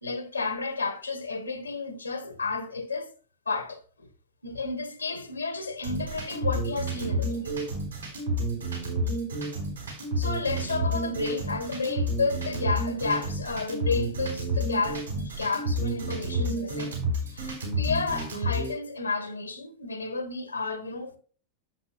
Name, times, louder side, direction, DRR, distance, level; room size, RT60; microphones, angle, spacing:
voice 1, 0.0-3.1 3.5-4.1 4.4-7.6 9.0-9.1 10.2-16.9 17.3-21.2, left 4 dB, 80° left, 1.3 m, -31 dB
sound 1, 5.8-18.7, right 1 dB, 80° right, 4.0 m, -30 dB
11.0 x 7.7 x 2.2 m
figure-of-eight pair, 90°, 0 cm